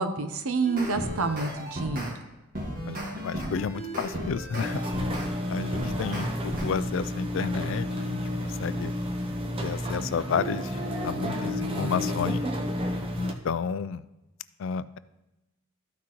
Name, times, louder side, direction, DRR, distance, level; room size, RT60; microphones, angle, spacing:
voice 1, 0.0-2.1, right 4 dB, 90° right, 9 dB, 0.7 m, -28 dB
sound 1, 0.6-2.1 2.5-5.3 5.7-6.7, equal, 40° right, 1.6 m, -35 dB
voice 2, 2.9-4.9 5.5-9.0 9.6-12.4 13.2-14.1 14.6-15.0, left 6 dB, 65° left, 16 dB, 0.3 m, -31 dB
sound 2, 4.6-13.3, equal, 25° right, 0.6 m, -31 dB
13.5 x 6.1 x 3.0 m, 0.99 s
head